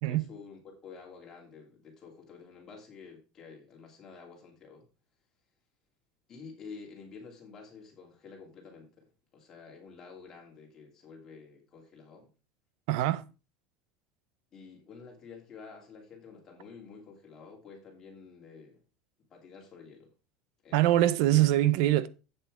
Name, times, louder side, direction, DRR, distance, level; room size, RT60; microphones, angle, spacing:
voice 1, 0.0-4.8 6.3-12.3 14.5-18.8 19.3-20.1 20.6-21.4, left 5 dB, 20° left, 2.8 m, -50 dB
voice 2, 12.9-13.2 20.7-22.1, right 14 dB, 60° right, 0.6 m, -23 dB
8.1 x 6.7 x 4.8 m
cardioid pair, 175°, 2 cm